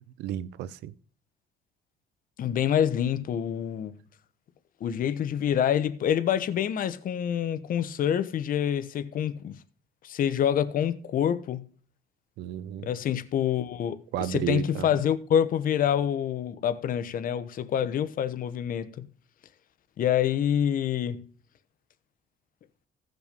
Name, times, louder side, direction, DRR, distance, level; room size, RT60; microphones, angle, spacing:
voice 1, 0.2-0.9 12.4-12.9 14.1-15.0, right 12 dB, 85° right, 0.7 m, -32 dB
voice 2, 2.4-3.9 4.8-9.6 10.0-11.6 12.9-14.0 14.3-19.0 20.0-21.2, left 9 dB, 55° left, 1.2 m, -26 dB
16.0 x 5.9 x 5.3 m
cardioid pair, 110°, 17 cm